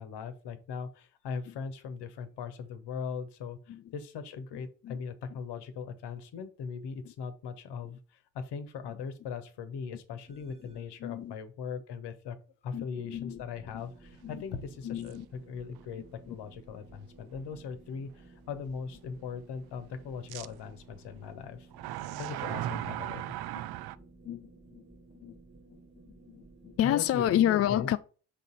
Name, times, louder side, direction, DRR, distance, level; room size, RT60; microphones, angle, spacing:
voice 1, 0.0-12.4 12.6-21.7 22.2-23.3 26.8-27.9, left 6 dB, 60° left, 1.2 m, -40 dB
sound 1, 10.3-11.0 13.1-27.1, right 3 dB, 15° right, 1.3 m, -56 dB
voice 2, 11.0-11.3 12.7-13.4 13.7-13.9 14.2-14.4 14.8-15.3 16.3-16.4 24.3-24.8 25.2-25.4 26.3-28.0, left 11 dB, 35° left, 0.4 m, -30 dB
sound 2, 15.0-15.1 15.8-15.9 20.3-20.5 21.7-24.0, right 14 dB, 55° right, 0.5 m, -36 dB
5.9 x 4.0 x 4.1 m
hypercardioid pair, 40°, 47 cm